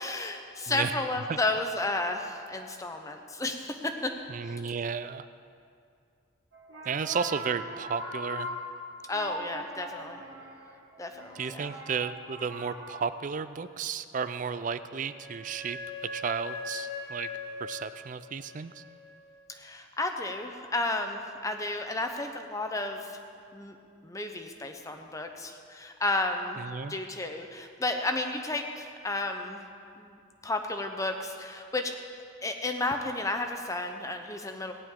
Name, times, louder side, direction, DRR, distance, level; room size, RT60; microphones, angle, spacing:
voice 1, 0.0-4.1 4.5-4.6 9.1-10.2 11.0-11.7 19.5-23.2 23.5-23.7 24.0-26.6 26.9-29.6 30.0-30.2 30.4-31.9 32.4-34.7, left 2 dB, 15° left, 5 dB, 0.7 m, -32 dB
voice 2, 4.3-5.3 6.9-8.5 11.4-15.8 16.1-17.3 17.6-18.7 26.6-27.0, right 6 dB, 40° right, 13 dB, 0.3 m, -33 dB
sound 1, 6.5-13.0, equal, 70° right, 1.5 m, -41 dB
Wind instrument woodwind instrument, 14.6-19.2, left 3 dB, 75° left, 2.7 m, -41 dB
18.0 x 10.5 x 3.7 m, 2.4 s
head